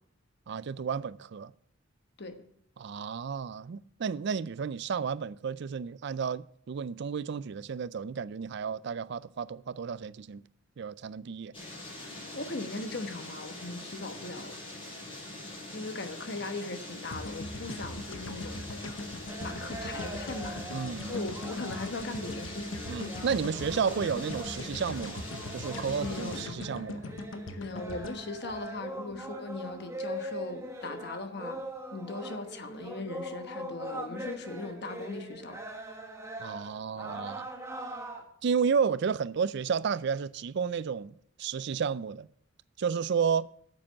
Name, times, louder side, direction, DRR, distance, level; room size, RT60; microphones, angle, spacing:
voice 1, 0.5-1.5 2.8-10.4 10.8-11.5 20.7-21.3 22.9-25.3 25.5-27.1 36.4-37.5 38.4-41.1 41.4-42.3 42.8-43.5, right 6 dB, 60° right, 0.4 m, -32 dB
sound 1, 11.5-26.4, left 1 dB, 25° left, 5.1 m, -43 dB
voice 2, 12.3-14.6 15.7-18.8 19.4-20.6 21.0-22.9 26.0-26.7 27.6-31.6 31.9-35.6, left 3 dB, 55° left, 1.2 m, -39 dB
sound 2, 17.1-29.3, left 2 dB, 70° left, 0.9 m, -41 dB
sound 3, 19.3-38.2, right 1 dB, 15° right, 1.2 m, -42 dB
9.1 x 7.6 x 7.2 m
head